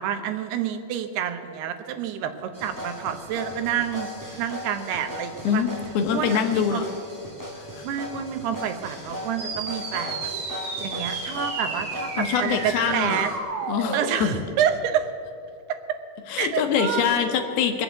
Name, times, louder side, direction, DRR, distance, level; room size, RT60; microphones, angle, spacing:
voice 1, 0.0-5.6 6.1-6.8 7.8-10.3 10.8-13.3 13.6-15.1 16.4-17.2, right 9 dB, 80° right, 8 dB, 3.0 m, -28 dB
sound 1, 2.5-13.4, left 1 dB, 5° right, 1.5 m, -37 dB
voice 2, 5.4-6.8 7.6-7.9 12.2-13.2 13.7-14.3 16.3-17.8, left 7 dB, 75° left, 6 dB, 2.9 m, -24 dB
sound 2, 9.4-14.4, right 3 dB, 65° right, 4.2 m, -32 dB
22.5 x 7.8 x 8.1 m, 2.5 s
omnidirectional pair, 4.6 m